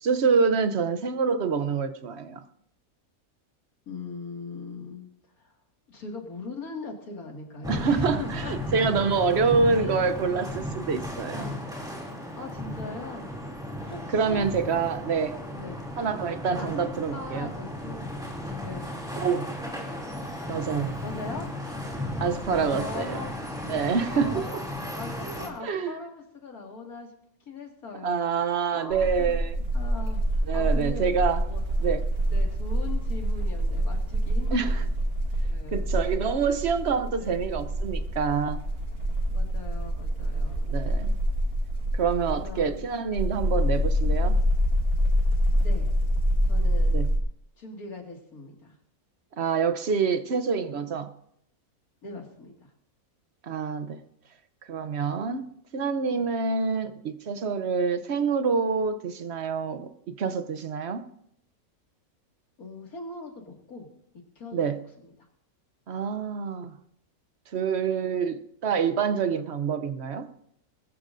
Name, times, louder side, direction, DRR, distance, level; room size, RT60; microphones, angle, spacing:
voice 1, 0.0-2.4 7.7-11.5 14.1-15.4 16.0-17.5 19.2-19.5 20.5-20.9 22.2-23.2 23.7-24.6 25.6-25.9 28.0-29.6 30.5-31.4 31.8-32.1 34.5-34.8 35.7-38.6 40.6-41.1 41.9-44.4 46.9-47.1 49.4-51.1 53.4-54.0 54.7-61.1 64.5-64.8 65.9-66.8 67.5-70.3, right 5 dB, 55° right, 1.0 m, -26 dB
voice 2, 3.9-5.1 5.4-5.5 5.9-8.5 9.8-10.0 11.3-11.6 12.3-13.3 13.9-14.5 15.5-15.8 16.6-18.0 18.6-18.9 21.0-21.5 22.5-23.4 24.1-24.6 25.0-27.1 27.5-29.4 29.7-30.2 30.5-31.1 31.5-31.6 32.3-34.9 35.4-35.9 37.2-37.4 39.3-40.7 42.4-42.9 45.6-45.9 46.4-47.0 47.6-48.7 52.0-52.5 62.6-63.9 64.4-65.1, left 3 dB, 85° left, 2.7 m, -40 dB
sound 1, 7.6-25.5, left 1 dB, 5° right, 2.7 m, -35 dB
sound 2, 28.9-47.2, equal, 75° right, 2.8 m, -26 dB
20.5 x 14.0 x 2.6 m
omnidirectional pair, 1.5 m